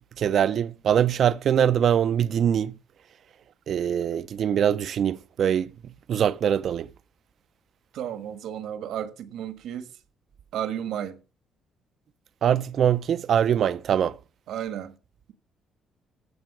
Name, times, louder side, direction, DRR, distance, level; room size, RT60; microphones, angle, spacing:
voice 1, 0.2-2.7 3.7-5.7 6.1-6.9 12.4-14.2, right 9 dB, 50° right, 0.5 m, -23 dB
voice 2, 7.9-9.9 10.5-11.2 14.5-14.9, right 10 dB, 75° right, 1.4 m, -33 dB
15.0 x 6.2 x 6.0 m
cardioid pair, 135°, 0 cm